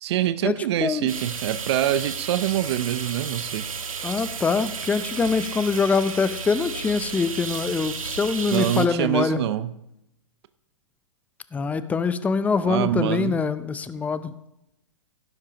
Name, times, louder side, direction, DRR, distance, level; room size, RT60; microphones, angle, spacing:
voice 1, 0.0-3.6 8.5-9.7 12.6-13.4, right 12 dB, 50° right, 13 dB, 0.7 m, -25 dB
sound 1, 1.1-8.9, right 5 dB, 85° right, 1.4 m, -33 dB
voice 2, 4.0-9.4 11.5-14.3, left 5 dB, 10° left, 13 dB, 0.5 m, -24 dB
16.5 x 10.5 x 2.9 m, 0.81 s
hypercardioid pair, 125°, 17 cm